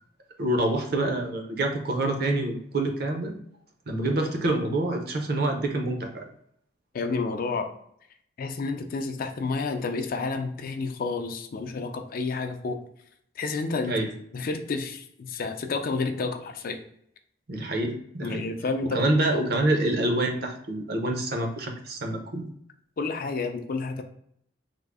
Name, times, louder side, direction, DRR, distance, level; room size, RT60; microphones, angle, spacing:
voice 1, 0.4-3.3 3.9-6.3 13.9-14.1 17.5-18.5 18.9-22.4, right 1 dB, 60° right, 3 dB, 0.6 m, -26 dB
voice 2, 6.9-7.7 8.4-12.8 13.4-14.0 14.3-16.8 18.2-19.0 19.4-19.5 23.0-24.0, left 4 dB, 50° left, 6 dB, 0.4 m, -30 dB
3.5 x 2.0 x 3.5 m, 0.69 s
head